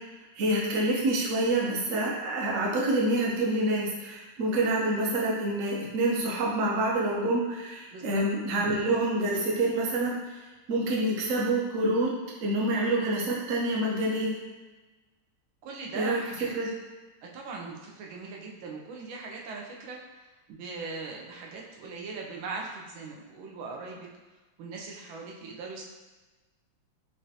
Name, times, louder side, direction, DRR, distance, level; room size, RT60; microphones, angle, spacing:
voice 1, 0.4-10.4 10.7-12.1 12.4-14.4 15.9-16.2 16.5-16.7, right 1 dB, 60° right, -3 dB, 0.8 m, -27 dB
voice 2, 7.9-8.2 15.6-16.5 17.2-20.0 20.5-24.1 24.6-25.8, right 4 dB, 90° right, -1 dB, 1.4 m, -40 dB
5.0 x 2.5 x 2.7 m, 1.2 s
omnidirectional pair, 2.1 m